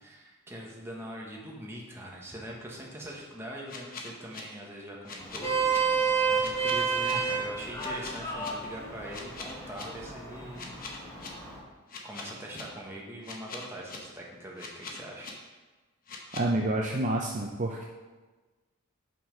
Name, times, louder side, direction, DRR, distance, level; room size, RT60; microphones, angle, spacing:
voice 1, 0.0-10.8 12.0-15.3, equal, 10° right, -3 dB, 1.2 m, -42 dB
sound 1, 3.7-4.4 5.0-5.8 6.4-7.1 7.8-8.5 9.1-9.8 10.5-11.3 11.9-12.6 13.2-14.0 14.6-15.3 16.1-16.4, left 4 dB, 40° left, 1.0 m, -42 dB
Vehicle horn car horn honking, 5.2-11.6, right 5 dB, 15° left, 1.5 m, -30 dB
voice 2, 16.3-17.8, right 1 dB, 35° right, 0 dB, 0.5 m, -28 dB
5.8 x 5.7 x 5.1 m, 1.3 s
head